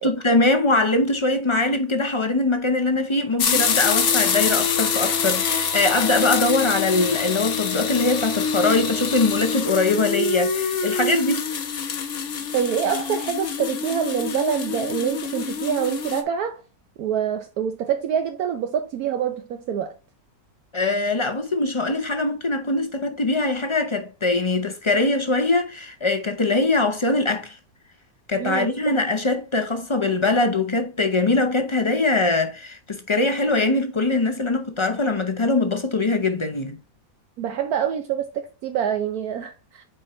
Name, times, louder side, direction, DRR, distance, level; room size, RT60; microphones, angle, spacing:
voice 1, 0.0-11.4 20.7-27.6 28.3-36.8, left 2 dB, 35° left, 0.4 m, -22 dB
sound 1, 3.4-16.2, left 6 dB, 55° left, 1.2 m, -25 dB
voice 2, 12.5-16.6 17.0-20.0 28.4-28.7 37.4-39.8, right 8 dB, 75° right, 1.1 m, -26 dB
8.4 x 4.5 x 3.0 m
omnidirectional pair, 1.7 m